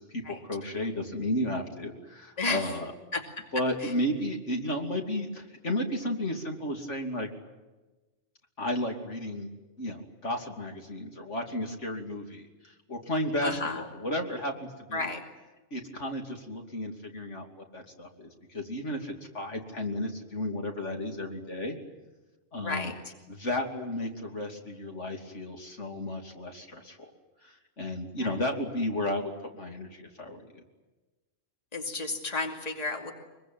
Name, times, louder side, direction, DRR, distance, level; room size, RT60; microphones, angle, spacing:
voice 1, 0.0-2.9 3.5-7.3 8.6-9.5 9.8-15.1 15.7-21.8 22.5-22.9 23.3-27.1 27.4-30.6, left 1 dB, 65° left, 3 dB, 3.3 m, -33 dB
voice 2, 3.1-3.4 3.8-3.9 13.4-13.8 14.9-15.2 22.6-23.1 28.2-28.3 31.7-33.1, left 3 dB, 30° left, 3 dB, 2.7 m, -32 dB
24.0 x 23.0 x 9.3 m, 1.2 s
omnidirectional pair, 1.3 m